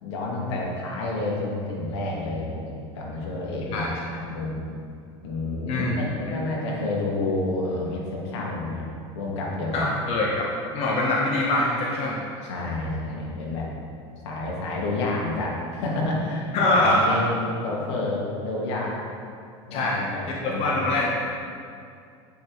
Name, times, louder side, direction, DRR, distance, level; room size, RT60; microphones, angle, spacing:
voice 1, 0.0-4.6 5.2-9.9 12.4-13.7 14.2-19.0 19.7-20.8, left 2 dB, 75° left, -2 dB, 1.6 m, -29 dB
voice 2, 5.7-6.1 9.7-10.5 10.7-12.2 16.5-17.2 19.7-21.1, left 2 dB, 45° left, -3 dB, 1.0 m, -23 dB
8.9 x 5.3 x 3.1 m, 2.3 s
hypercardioid pair, 100°, 14 cm